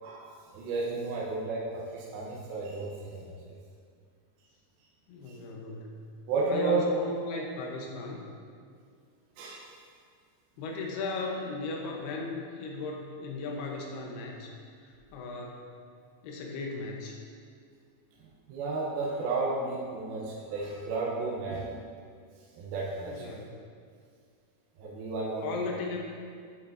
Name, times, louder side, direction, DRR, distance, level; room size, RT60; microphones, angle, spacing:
voice 1, 0.0-3.3 6.3-6.9 9.4-9.7 18.5-21.8 22.6-23.3 24.8-25.6, right 3 dB, 75° right, -4 dB, 2.6 m, -32 dB
voice 2, 5.1-6.0 6.5-8.2 10.6-14.5 14.8-15.7 16.2-17.1 23.1-23.5 25.4-26.0, left 3 dB, 85° left, 0 dB, 3.0 m, -36 dB
9.6 x 8.0 x 2.6 m, 2.2 s
omnidirectional pair, 4.5 m